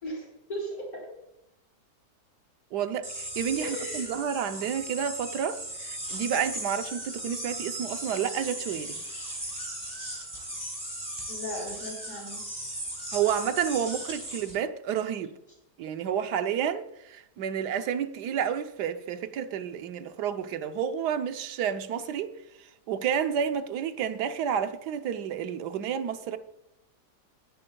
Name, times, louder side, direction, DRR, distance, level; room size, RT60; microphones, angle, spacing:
voice 1, 0.0-1.1 3.6-4.1 11.3-12.4, equal, 55° left, 4.7 m, -37 dB
voice 2, 2.7-9.0 13.1-15.3 15.8-22.3 22.9-26.4, right 8 dB, 70° right, 1.3 m, -30 dB
sound 1, 3.0-14.6, right 1 dB, 20° right, 5.0 m, -37 dB
19.5 x 9.8 x 2.3 m
omnidirectional pair, 1.9 m